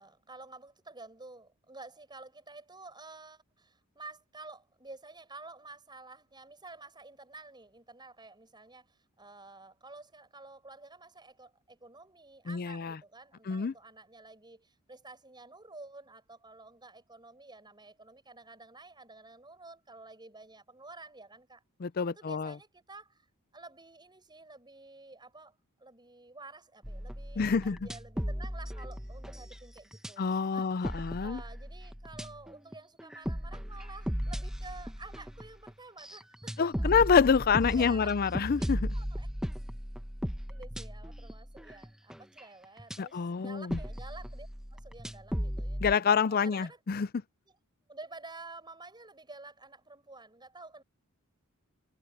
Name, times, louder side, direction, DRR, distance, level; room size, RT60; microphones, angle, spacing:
voice 1, 0.0-21.6 22.1-23.3 23.5-36.9 37.7-38.2 38.9-39.3 40.5-46.8 47.5-47.6 47.9-50.8, right 3 dB, 20° right, 6.1 m, -51 dB
voice 2, 12.5-13.0 13.5-13.7 21.8-22.5 27.4-27.8 30.2-31.4 36.6-38.9 43.0-43.8 45.8-47.1, left 6 dB, 45° left, 0.4 m, -27 dB
sound 1, 26.8-30.1 30.6-43.0 43.4-45.9, equal, 5° right, 1.0 m, -37 dB
head